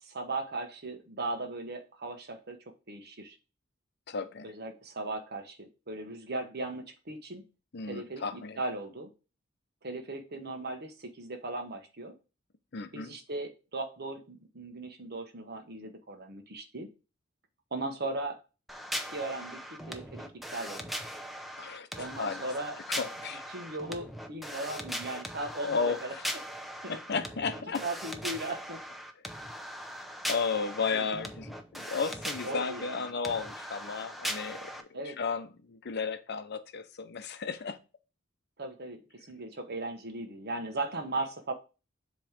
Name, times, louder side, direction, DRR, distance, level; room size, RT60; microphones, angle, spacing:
voice 1, 0.0-2.6 2.9-3.4 4.4-7.5 7.9-9.1 9.8-12.1 12.9-16.9 17.7-18.4 19.1-20.9 22.0-22.7 23.5-26.1 26.8-26.9 27.8-28.8 30.9-31.1 32.4-33.0 34.9-35.2 38.6-39.0 39.3-41.5, right 2 dB, 55° right, 1.2 m, -37 dB
voice 2, 4.1-4.5 7.7-8.8 12.7-13.2 21.6-22.4 22.9-23.4 24.4-24.6 25.6-26.4 26.9-27.8 29.7-29.8 30.3-37.8, left 5 dB, 55° left, 0.7 m, -34 dB
sound 1, 18.7-34.8, equal, ahead, 0.6 m, -40 dB
7.6 x 3.1 x 5.0 m
head